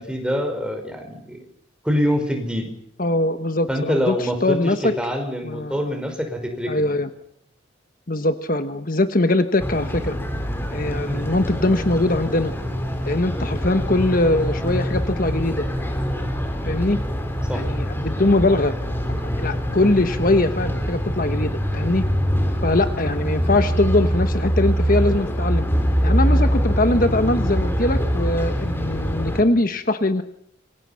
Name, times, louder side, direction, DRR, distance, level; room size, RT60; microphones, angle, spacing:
voice 1, 0.0-1.5 1.8-2.7 3.7-6.9 11.1-11.4 17.5-17.6, equal, 5° right, 4 dB, 5.1 m, -25 dB
voice 2, 3.0-5.0 5.4-6.0 6.7-7.1 8.1-10.2 10.7-12.5 13.1-15.7 16.7-17.0 17.5-18.7 19.4-22.0 22.6-25.7 26.0-30.2, left 2 dB, 45° left, 9 dB, 1.2 m, -21 dB
sound 1, 9.6-29.4, equal, 10° left, 4.0 m, -24 dB
28.0 x 24.0 x 5.8 m, 0.69 s
head